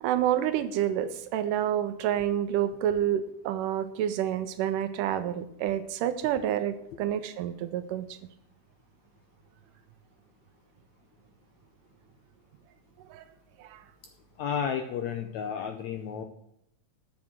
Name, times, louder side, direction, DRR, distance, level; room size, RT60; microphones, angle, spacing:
voice 1, 0.0-8.2 13.1-13.3 13.6-13.8, right 10 dB, 80° right, 10 dB, 2.1 m, -28 dB
voice 2, 14.4-16.2, left 7 dB, 75° left, 5 dB, 1.7 m, -32 dB
8.5 x 6.2 x 7.7 m, 0.77 s
omnidirectional pair, 4.0 m